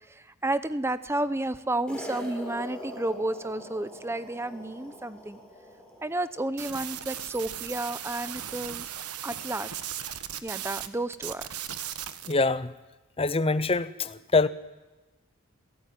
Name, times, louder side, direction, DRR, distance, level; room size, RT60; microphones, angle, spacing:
voice 1, 0.1-5.4 6.0-8.9 9.2-9.7 10.4-11.5, right 2 dB, 10° right, 0.7 m, -31 dB
sound 1, 1.9-6.3, equal, 5° left, 4.1 m, -42 dB
sound 2, 6.6-10.9 11.1-12.3, right 10 dB, 85° right, 1.3 m, -37 dB
voice 2, 12.3-12.7 13.2-14.5, left 3 dB, 25° left, 0.7 m, -24 dB
26.5 x 16.5 x 9.3 m
head